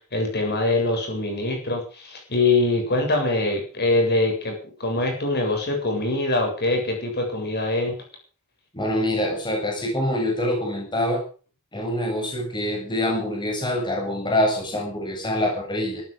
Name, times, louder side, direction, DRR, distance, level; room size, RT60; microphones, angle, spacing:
voice 1, 0.1-8.0, left 2 dB, 50° left, 3 dB, 7.9 m, -23 dB
voice 2, 8.7-11.2 11.7-16.0, left 1 dB, 20° left, 0 dB, 7.4 m, -25 dB
18.0 x 14.0 x 5.2 m, 0.39 s
head